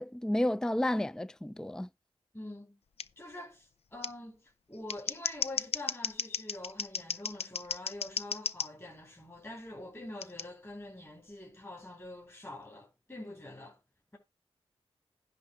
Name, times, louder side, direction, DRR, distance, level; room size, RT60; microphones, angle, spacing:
voice 1, 0.0-1.9, left 1 dB, 5° left, 0.4 m, -31 dB
voice 2, 2.3-2.8 3.2-13.8, left 1 dB, 25° left, 4.2 m, -45 dB
Scissors, 3.0-3.1 4.0-4.1 4.7-8.7 10.2-10.4, left 6 dB, 70° left, 0.5 m, -35 dB
10.5 x 3.7 x 7.2 m
cardioid pair, 45°, 11 cm